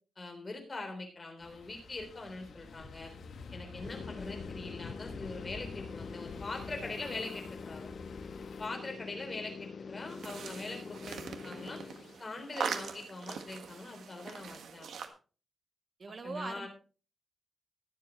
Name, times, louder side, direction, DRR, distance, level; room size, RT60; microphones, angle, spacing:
voice 1, 0.2-3.1 3.5-7.9 8.6-11.8 12.2-14.9 16.2-16.7, left 2 dB, 25° left, 4 dB, 3.6 m, -42 dB
sound 1, 1.4-8.7, left 4 dB, 70° left, 2.0 m, -47 dB
sound 2, 3.8-12.6, left 5 dB, 45° left, 0.6 m, -45 dB
sound 3, 10.1-15.1, right 6 dB, 85° right, 1.5 m, -41 dB
voice 2, 16.0-16.7, right 4 dB, 35° right, 11 dB, 1.0 m, -41 dB
21.0 x 7.7 x 3.0 m, 0.35 s
wide cardioid pair, 165°, 0 cm